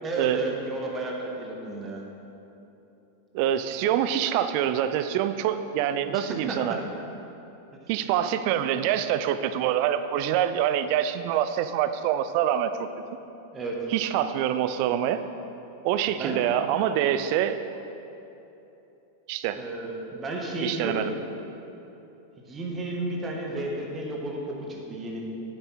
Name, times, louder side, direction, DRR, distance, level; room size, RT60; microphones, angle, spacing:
voice 1, 0.0-2.0 6.1-6.8 13.5-13.9 16.2-16.5 19.6-21.1 22.4-25.2, right 2 dB, 20° right, -1 dB, 1.5 m, -32 dB
voice 2, 3.3-6.8 7.9-12.9 13.9-15.2 15.8-17.6 19.3-19.6 20.6-21.1, right 10 dB, 45° right, 11 dB, 0.4 m, -25 dB
9.5 x 7.8 x 4.1 m, 2.9 s
figure-of-eight pair, 90°, 0 cm